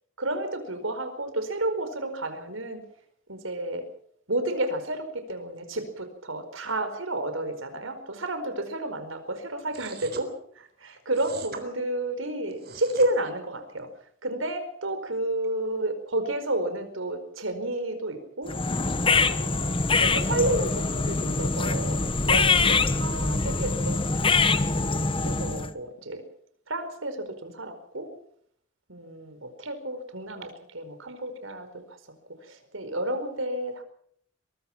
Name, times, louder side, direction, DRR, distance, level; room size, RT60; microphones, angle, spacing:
voice 1, 0.2-2.8 3.3-3.9 4.3-13.9 14.2-18.6 19.1-24.4 25.2-26.2 26.7-28.1 28.9-32.0 32.3-33.8, right 1 dB, 85° right, 9 dB, 4.8 m, -31 dB
sound 1, 9.7-10.3 11.1-11.6 12.5-13.1, right 5 dB, 55° right, 3.8 m, -41 dB
sound 2, 18.5-25.7, left 3 dB, 25° left, 1.1 m, -24 dB
23.0 x 22.0 x 5.9 m, 0.64 s
head